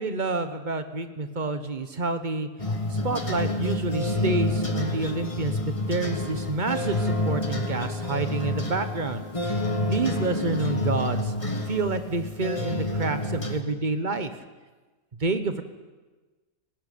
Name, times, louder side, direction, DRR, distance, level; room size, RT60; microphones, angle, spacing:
voice 1, 0.0-2.5 2.9-9.2 9.8-11.3 11.7-14.3 15.2-15.6, right 3 dB, 30° right, 9 dB, 1.3 m, -28 dB
sound 1, 2.6-13.6, left 1 dB, 20° left, 1.5 m, -28 dB
18.5 x 18.5 x 8.6 m, 1.3 s
omnidirectional pair, 1.7 m